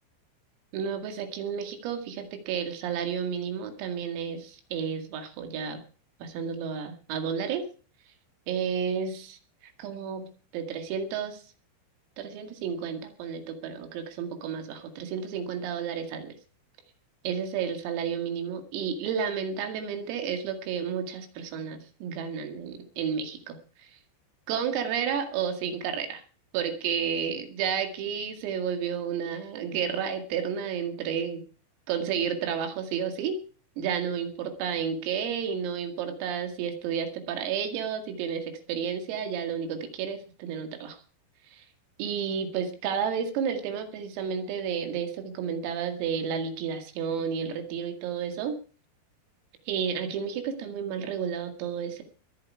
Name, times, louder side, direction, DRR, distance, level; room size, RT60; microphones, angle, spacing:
voice 1, 0.7-5.8 6.2-7.7 8.5-11.4 12.2-16.3 17.2-23.9 24.5-26.2 26.5-31.4 31.9-33.4 33.8-41.0 41.5-41.7 42.0-48.6 49.7-52.0, right 7 dB, 85° right, 6 dB, 4.9 m, -31 dB
23.0 x 8.7 x 4.7 m, 0.39 s
omnidirectional pair, 5.9 m